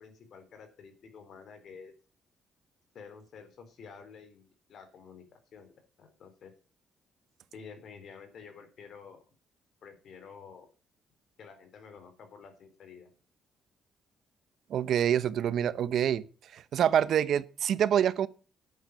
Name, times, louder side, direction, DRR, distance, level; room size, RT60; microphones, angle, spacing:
voice 1, 0.0-1.9 2.9-5.7 6.0-6.5 7.5-9.2 9.8-10.7 11.4-13.1, left 6 dB, 65° left, 3.7 m, -50 dB
voice 2, 14.7-16.2 16.5-18.3, right 9 dB, 70° right, 0.8 m, -26 dB
10.5 x 9.0 x 6.3 m
cardioid pair, 90°, 0 cm